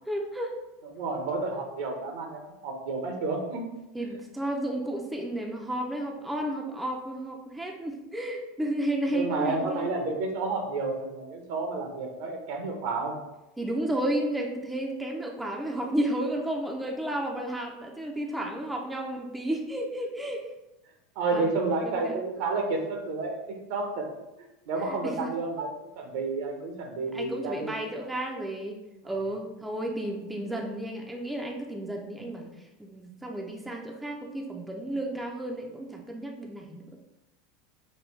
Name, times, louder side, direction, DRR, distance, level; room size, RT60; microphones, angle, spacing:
voice 1, 0.1-0.5 3.9-9.9 13.6-20.4 21.3-21.5 21.8-22.1 24.9-25.3 27.1-28.8 29.0-32.5 32.8-37.0, right 1 dB, 10° right, 1 dB, 0.6 m, -32 dB
voice 2, 0.8-3.6 9.1-13.2 21.2-24.1 24.7-25.7 26.0-27.7 29.0-29.1, right 3 dB, 70° right, 2 dB, 0.9 m, -30 dB
5.4 x 2.2 x 3.2 m, 0.97 s
hypercardioid pair, 100°, 0 cm